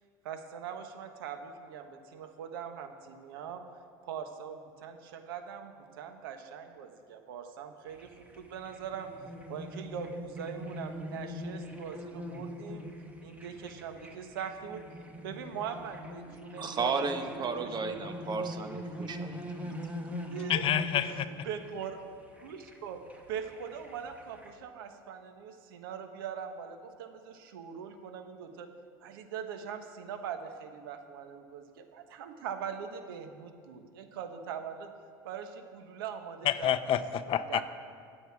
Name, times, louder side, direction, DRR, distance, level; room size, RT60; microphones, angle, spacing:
voice 1, 0.2-3.6 4.0-8.1 8.4-9.1 9.5-12.8 13.2-14.8 15.2-17.0 17.4-17.7 20.3-20.7 21.0-21.1 21.4-22.0 22.4-23.0 23.3-28.7 29.0-34.9 35.2-36.7 37.5-37.6, right 7 dB, 85° right, 6 dB, 1.3 m, -41 dB
sound 1, 7.9-24.5, equal, 10° right, 1.9 m, -43 dB
voice 2, 16.6-19.7, right 4 dB, 40° right, 6 dB, 1.5 m, -34 dB
voice 3, 20.5-21.1 36.4-37.6, left 10 dB, 50° left, 12 dB, 0.6 m, -28 dB
20.5 x 8.0 x 4.7 m, 2.2 s
supercardioid pair, 90°, 12 cm